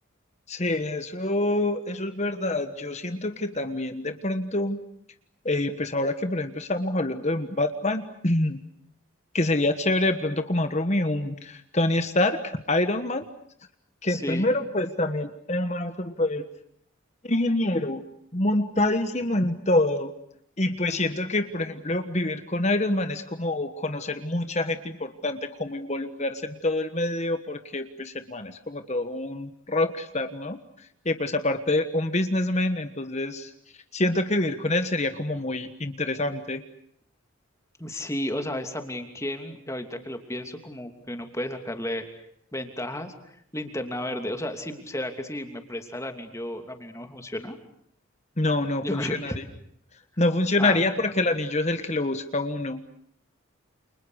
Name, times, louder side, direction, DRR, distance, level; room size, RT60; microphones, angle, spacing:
voice 1, 0.5-4.8 5.4-8.6 9.3-13.2 14.0-16.4 17.2-18.0 18.3-20.1 20.6-30.6 31.0-33.5 33.9-36.6 48.4-49.4 50.2-52.8, left 2 dB, 30° left, 9 dB, 1.4 m, -26 dB
voice 2, 14.1-14.5 37.8-42.1 42.5-47.6 48.8-49.4 50.6-50.8, left 1 dB, 15° left, 6 dB, 2.9 m, -33 dB
29.5 x 29.5 x 6.5 m, 0.69 s
head